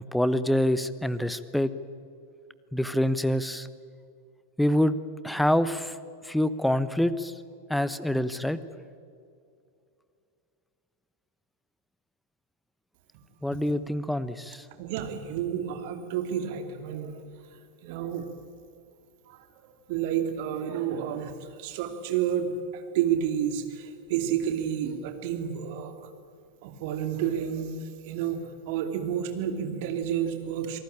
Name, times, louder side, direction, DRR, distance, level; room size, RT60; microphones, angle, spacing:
voice 1, 0.1-1.7 2.7-3.7 4.6-5.0 5.2-5.9 6.2-7.3 7.7-8.6 13.4-14.6, left 1 dB, ahead, 15 dB, 1.1 m, -26 dB
voice 2, 14.8-17.1 17.8-18.3 19.3-19.4 19.9-25.9 26.6-30.8, right 9 dB, 50° right, 7 dB, 2.6 m, -30 dB
27.5 x 18.5 x 8.9 m, 2.4 s
figure-of-eight pair, 90°, 0 cm